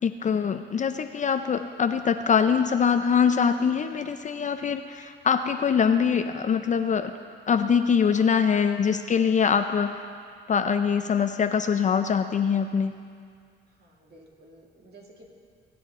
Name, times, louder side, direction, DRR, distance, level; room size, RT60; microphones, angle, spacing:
voice 1, 0.0-7.1 7.5-10.0 10.5-13.0, left 6 dB, 40° left, 8 dB, 0.5 m, -23 dB
voice 2, 13.7-15.2, right 2 dB, 55° right, -1 dB, 2.3 m, -53 dB
19.5 x 8.5 x 3.7 m, 2.2 s
cardioid pair, 90°, 20 cm